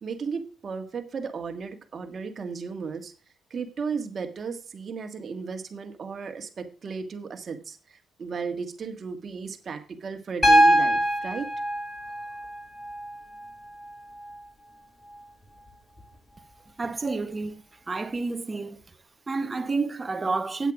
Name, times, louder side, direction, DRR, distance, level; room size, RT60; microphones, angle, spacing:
voice 1, 0.0-3.1 3.5-11.5, right 5 dB, 45° right, 1.7 m, -35 dB
Piano, 10.4-14.4 16.0-16.1, equal, 15° left, 2.1 m, -24 dB
voice 2, 16.8-17.6 17.9-18.8 19.3-20.7, right 3 dB, 25° right, 1.1 m, -29 dB
8.5 x 8.1 x 4.9 m
cardioid pair, 90°, 0 cm